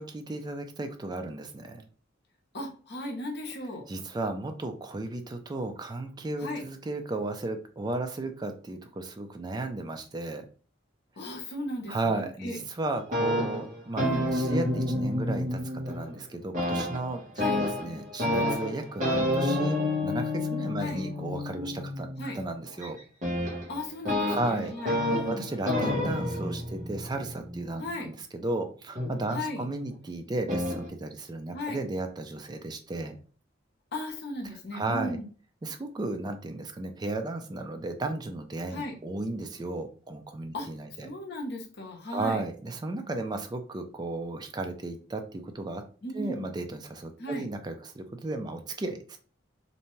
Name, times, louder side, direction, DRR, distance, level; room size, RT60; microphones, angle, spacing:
voice 1, 0.0-1.9 3.9-10.5 11.9-17.2 17.5-23.0 24.2-24.7 25.3-33.2 34.7-35.2 35.6-41.1 42.1-45.8 46.1-49.2, right 2 dB, 20° right, 6 dB, 0.3 m, -34 dB
voice 2, 2.5-3.8 6.4-6.6 11.2-12.6 14.0-14.3 17.4-17.6 20.8-21.0 22.2-22.4 23.7-25.5 27.8-28.1 29.3-29.6 31.5-31.8 33.9-35.2 38.7-39.0 40.5-40.7 41.0-42.4 46.0-46.4 47.2-47.5, left 1 dB, 55° left, 1 dB, 0.7 m, -36 dB
sound 1, 12.9-16.2 16.5-28.1 29.0-29.8 30.5-30.9, left 1 dB, 40° right, 0.9 m, -30 dB
2.6 x 2.2 x 3.0 m, 0.40 s
head